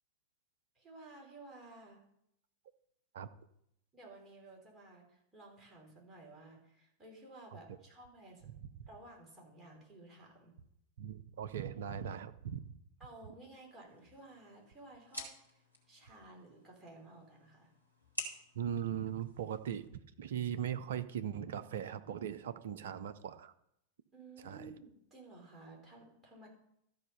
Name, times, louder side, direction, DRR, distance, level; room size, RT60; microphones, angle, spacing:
voice 1, 0.8-2.0 3.9-8.5 8.9-10.6 13.0-17.7 24.1-26.5, right 2 dB, 15° right, -2 dB, 3.6 m, -55 dB
voice 2, 8.5-8.9 11.0-12.8 18.5-19.9 20.2-23.5 24.4-24.7, right 9 dB, 60° right, 11 dB, 0.6 m, -39 dB
sound 1, 13.9-19.9, equal, 85° left, 1.7 m, -50 dB
13.0 x 5.0 x 5.6 m, 0.76 s
figure-of-eight pair, 90°, 0 cm